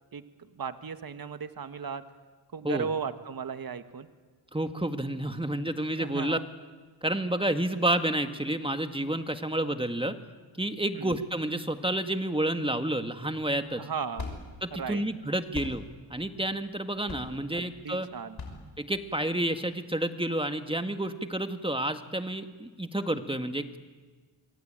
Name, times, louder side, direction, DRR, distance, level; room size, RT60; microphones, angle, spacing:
voice 1, 0.5-2.0 2.5-4.1 6.0-6.4 10.9-11.2 13.8-14.4 14.7-15.0 17.5-18.4, right 6 dB, 45° right, 10 dB, 1.6 m, -36 dB
voice 2, 4.5-6.4 7.0-10.2 10.6-13.9 14.6-15.8 16.1-18.1 18.8-23.8, right 1 dB, 10° right, 8 dB, 1.8 m, -30 dB
sound 1, 13.6-19.6, left 3 dB, 50° left, 5.9 m, -43 dB
26.5 x 22.5 x 9.0 m, 1.4 s
cardioid pair, 65°, 48 cm